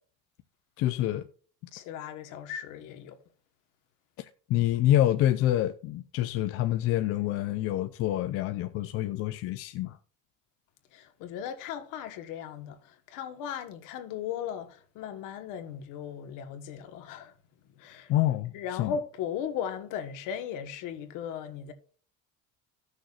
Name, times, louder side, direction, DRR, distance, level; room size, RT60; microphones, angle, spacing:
voice 1, 0.8-1.3 4.2-10.0 18.1-18.5 18.8-18.9, left 13 dB, 40° left, 0.4 m, -27 dB
voice 2, 1.7-3.2 10.9-17.3 17.8-18.1 18.5-21.7, left 8 dB, 60° left, 1.4 m, -37 dB
16.0 x 6.4 x 2.4 m
cardioid pair, 175°, 35 cm